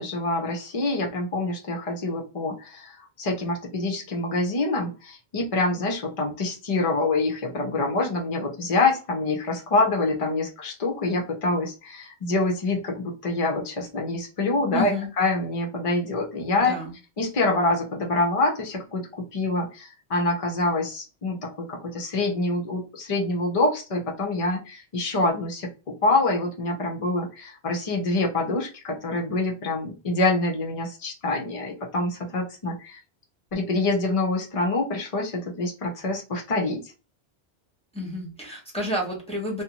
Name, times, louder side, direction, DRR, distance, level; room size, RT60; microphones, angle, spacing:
voice 1, 0.0-16.8 17.2-25.7 26.0-33.0 33.5-36.9, left 2 dB, 50° left, 1 dB, 0.4 m, -26 dB
voice 2, 14.7-15.1 16.5-16.9 37.9-39.6, left 1 dB, 5° left, -3 dB, 0.7 m, -30 dB
2.5 x 2.1 x 2.8 m, 0.33 s
omnidirectional pair, 1.1 m